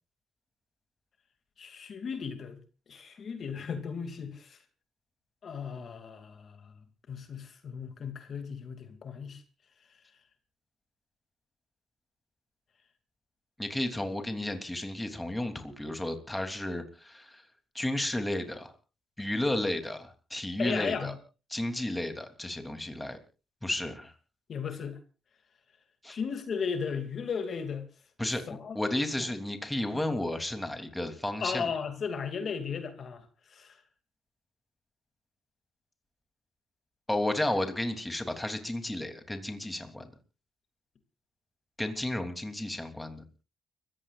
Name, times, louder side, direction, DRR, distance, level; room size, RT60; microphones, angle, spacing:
voice 1, 1.6-2.6 2.9-4.6 5.4-6.7 7.1-9.4 20.6-21.1 24.5-25.0 26.1-27.9 28.5-28.8 29.9-30.0 31.4-33.2 33.5-33.8, left 6 dB, 50° left, 8 dB, 2.5 m, -35 dB
voice 2, 13.6-17.4 17.7-18.7 19.2-21.1 21.5-23.2 23.6-24.1 26.0-26.2 28.2-31.7 37.1-40.1 41.8-43.2, left 1 dB, 10° left, 6 dB, 3.1 m, -33 dB
30.0 x 15.5 x 2.5 m, 0.34 s
cardioid pair, 90°, 0 cm